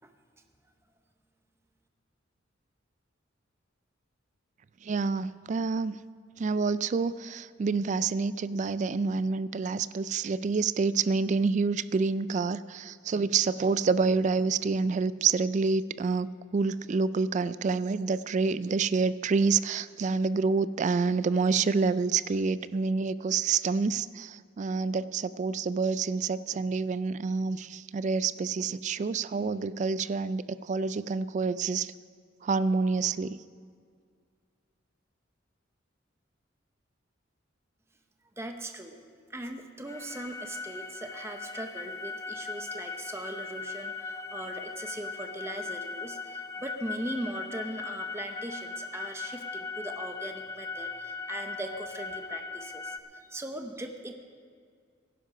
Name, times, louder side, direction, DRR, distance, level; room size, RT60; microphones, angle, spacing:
voice 1, 4.8-6.0 6.4-31.9 32.4-33.4, right 4 dB, 40° right, 16 dB, 0.3 m, -28 dB
voice 2, 38.4-39.0 39.3-54.1, right 1 dB, 15° right, 5 dB, 0.8 m, -39 dB
sound 1, 39.9-53.0, left 4 dB, 15° left, 0.6 m, -39 dB
16.0 x 11.0 x 5.0 m, 2.1 s
head